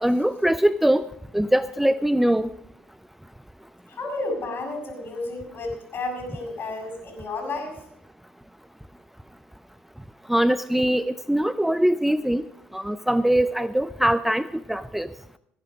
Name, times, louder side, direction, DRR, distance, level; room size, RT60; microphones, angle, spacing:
voice 1, 0.0-1.1 1.3-2.5 10.3-12.5 12.7-15.1, right 1 dB, 5° right, 14 dB, 0.5 m, -22 dB
voice 2, 3.9-7.8, left 2 dB, 45° left, 3 dB, 6.5 m, -32 dB
17.0 x 10.5 x 5.2 m, 0.76 s
hypercardioid pair, 65°, 5 cm